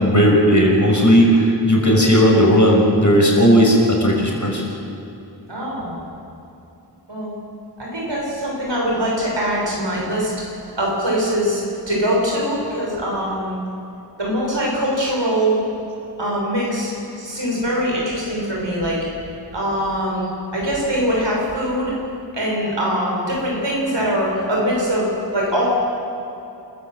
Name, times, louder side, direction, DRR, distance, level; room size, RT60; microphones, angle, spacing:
voice 1, 0.0-4.6, equal, 45° left, -1 dB, 6.0 m, -15 dB
voice 2, 5.5-6.0 7.1-7.3 7.8-10.3 10.7-13.6 14.2-15.6 16.2-19.1 19.5-21.9 22.3-25.7, equal, 85° right, -3 dB, 6.3 m, -22 dB
27.5 x 15.0 x 7.7 m, 2.8 s
wide cardioid pair, 45°, 42 cm